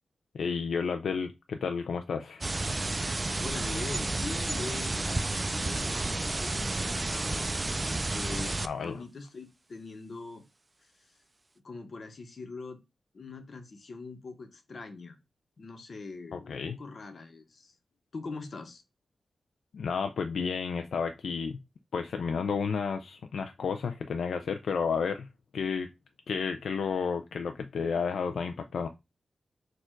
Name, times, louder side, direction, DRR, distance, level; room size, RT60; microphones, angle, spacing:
voice 1, 0.3-2.4 8.6-9.0 16.3-16.8 19.7-21.6 21.9-25.3 25.5-25.9 26.3-28.9, left 5 dB, 85° left, 0.4 m, -31 dB
sound 1, 2.4-8.7, right 2 dB, 30° right, 0.4 m, -31 dB
voice 2, 3.4-7.5 7.8-10.4 11.6-12.8 13.1-15.2 15.6-17.8 18.1-18.8, left 3 dB, 60° left, 0.9 m, -42 dB
4.5 x 2.4 x 4.4 m
cardioid pair, 65°, 0 cm